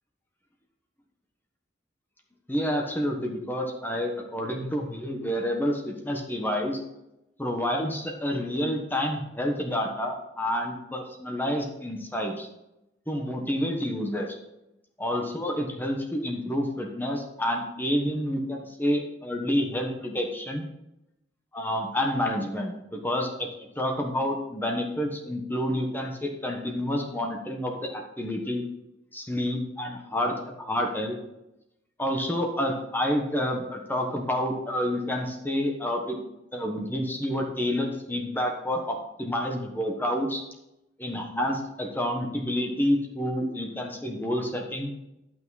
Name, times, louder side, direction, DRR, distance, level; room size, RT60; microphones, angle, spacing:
voice 1, 2.5-6.8 7.4-12.5 13.1-14.4 15.0-20.6 21.5-23.3 23.8-28.6 29.1-31.2 32.0-36.2 36.5-40.4 41.0-44.9, equal, 10° left, 1 dB, 1.2 m, -29 dB
11.5 x 6.0 x 4.1 m, 0.88 s
head